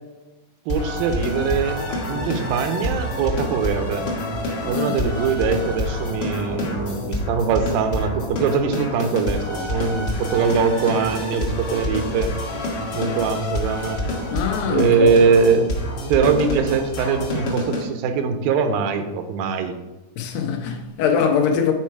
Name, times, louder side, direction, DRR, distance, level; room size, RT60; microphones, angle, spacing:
sound 1, 0.7-17.8, left 1 dB, 55° left, 1.2 m, -27 dB
voice 1, 0.7-1.8 2.1-4.0 4.6-12.3 13.0-14.0 14.7-15.7 16.1-19.8, right 6 dB, 85° right, 2.5 m, -22 dB
voice 2, 4.7-5.1 14.3-15.2 20.2-21.7, left 6 dB, 90° left, 2.7 m, -22 dB
8.8 x 4.6 x 4.6 m
omnidirectional pair, 4.0 m